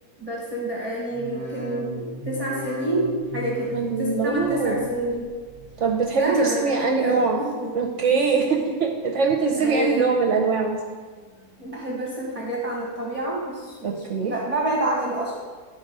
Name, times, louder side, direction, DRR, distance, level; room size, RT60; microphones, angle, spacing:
voice 1, 0.2-5.3 6.1-7.7 9.5-10.1 11.6-15.4, right 1 dB, 25° right, -4 dB, 1.2 m, -28 dB
sound 1, 1.0-6.4 6.7-7.3 7.8-8.5 8.9-9.5 10.0-10.6 11.1-11.7 12.2-12.3, right 1 dB, 5° left, 1.7 m, -40 dB
voice 2, 3.7-4.9 5.8-7.4 7.7-10.8 13.8-14.3, right 5 dB, 55° right, 2 dB, 1.0 m, -23 dB
12.0 x 4.3 x 5.3 m, 1.5 s
omnidirectional pair, 1.7 m